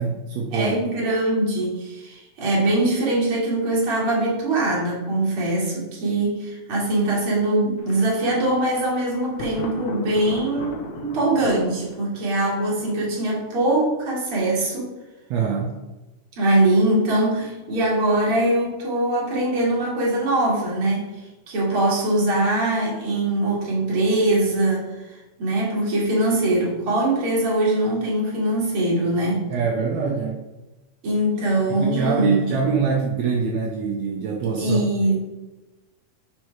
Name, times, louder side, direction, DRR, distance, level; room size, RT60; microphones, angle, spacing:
voice 1, 0.0-0.8 15.3-15.8 29.5-30.5 31.7-35.2, right 5 dB, 75° right, 0 dB, 1.9 m, -24 dB
voice 2, 0.5-14.9 16.4-21.1 21.5-29.5 31.0-32.5 34.6-35.2, right 1 dB, 50° right, -5 dB, 2.6 m, -22 dB
Thunder, 7.8-13.6, left 4 dB, 75° left, 1.9 m, -38 dB
5.6 x 4.7 x 4.5 m, 1.1 s
omnidirectional pair, 3.4 m